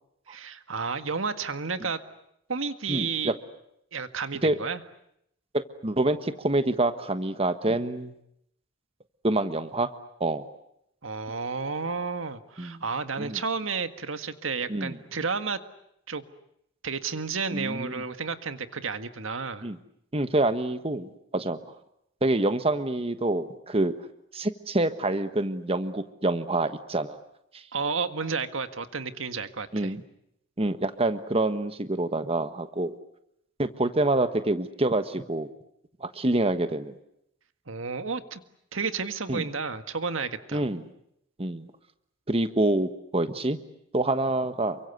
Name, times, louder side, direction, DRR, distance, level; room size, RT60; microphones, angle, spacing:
voice 1, 0.3-2.0 2.5-3.3 3.9-4.8 11.0-15.6 16.1-16.2 16.8-19.7 27.7-29.9 37.7-38.4 38.7-40.6, right 5 dB, 90° right, 10 dB, 1.7 m, -31 dB
voice 2, 2.9-3.4 4.4-4.6 5.5-8.1 9.2-9.9 10.2-10.4 12.6-12.8 13.2-13.4 14.7-14.9 17.5-18.0 19.6-19.8 20.1-21.6 22.2-23.9 24.3-27.2 29.7-30.0 30.6-32.9 33.6-35.5 36.0-36.9 39.3-39.5 40.5-40.8 41.4-41.7 42.3-43.6 43.9-44.8, right 2 dB, 30° right, 10 dB, 1.3 m, -26 dB
29.0 x 24.0 x 8.2 m, 0.76 s
head